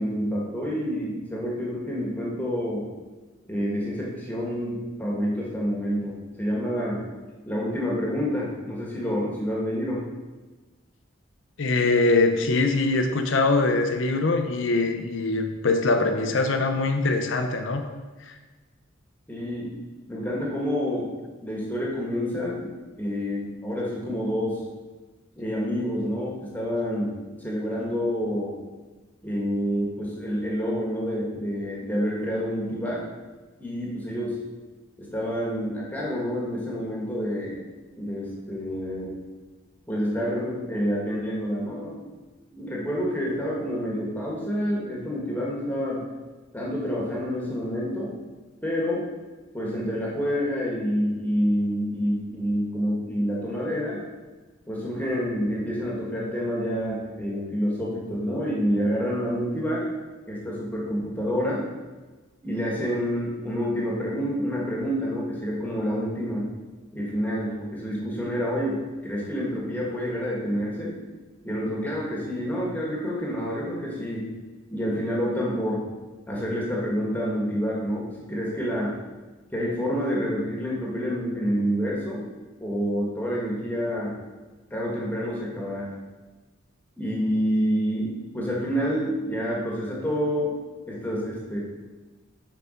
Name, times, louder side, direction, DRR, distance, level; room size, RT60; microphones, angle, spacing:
voice 1, 0.0-2.8 3.5-7.0 7.4-10.0 19.3-19.7 20.1-21.1 21.4-24.6 25.3-28.5 29.2-33.0 33.6-34.4 35.0-37.6 37.9-39.1 39.9-41.9 42.5-46.0 46.5-48.2 48.6-49.0 49.5-54.0 54.7-59.9 60.3-61.6 62.4-66.5 66.9-70.9 71.4-74.3 74.7-75.8 76.3-78.9 79.5-82.2 82.6-84.1 84.7-85.9 87.0-90.5 90.9-91.6, equal, 10° left, -4 dB, 1.4 m, -28 dB
voice 2, 11.6-17.8 18.2-18.4, left 3 dB, 65° left, 5 dB, 0.7 m, -23 dB
6.9 x 5.0 x 5.0 m, 1.3 s
head